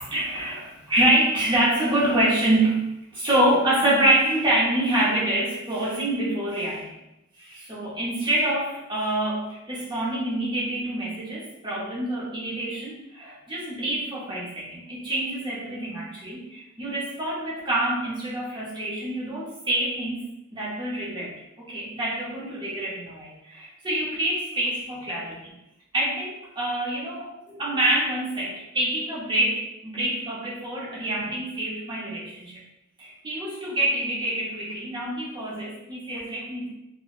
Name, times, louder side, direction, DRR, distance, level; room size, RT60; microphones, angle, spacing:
voice 1, 0.0-6.9 7.4-20.2 20.5-25.5 25.9-32.6 33.0-36.7, right 1 dB, 20° right, -7 dB, 0.7 m, -26 dB
2.8 x 2.1 x 2.4 m, 0.88 s
head